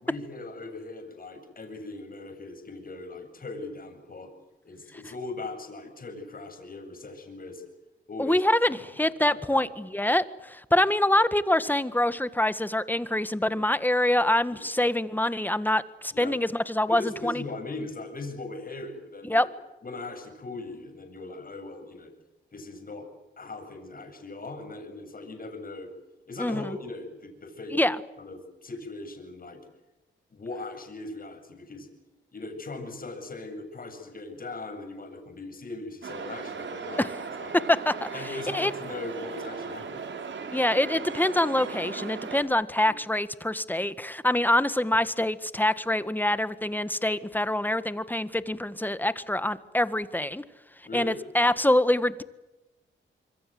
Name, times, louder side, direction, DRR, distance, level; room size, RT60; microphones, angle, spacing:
voice 1, 0.0-4.3 4.6-7.6 8.1-8.4 9.0-9.7 14.5-14.6 16.1-16.4 16.9-19.5 19.8-22.1 22.5-23.1 23.4-25.9 26.3-29.6 30.3-31.9 32.3-37.1 37.4-37.5 38.1-40.0 42.8-43.0 50.8-51.2, left 2 dB, 45° left, 5 dB, 7.8 m, -39 dB
voice 2, 8.2-17.4 19.3-19.5 26.4-26.8 27.7-28.0 37.0-37.1 37.7-38.1 38.5-38.7 40.5-50.4 50.9-52.2, left 1 dB, 10° left, 13 dB, 1.6 m, -25 dB
sound 1, 36.0-42.4, right 5 dB, 65° right, 4.4 m, -37 dB
26.5 x 24.5 x 7.9 m, 1.0 s
cardioid pair, 75°, 21 cm